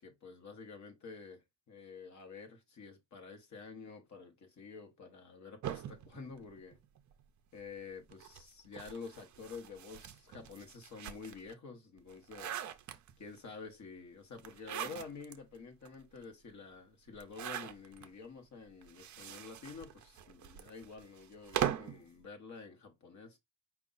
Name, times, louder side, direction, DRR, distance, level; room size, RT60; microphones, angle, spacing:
voice 1, 0.0-6.8 7.5-12.6 13.2-23.4, left 5 dB, 35° left, 1.1 m, -49 dB
sound 1, 5.6-7.2 8.1-11.5 12.0-13.4 14.4-15.4 15.8-15.9 16.2-16.3 17.1-18.1 18.8-22.0, right 10 dB, 40° right, 0.4 m, -41 dB
5.0 x 2.3 x 3.9 m
cardioid pair, 175°, 47 cm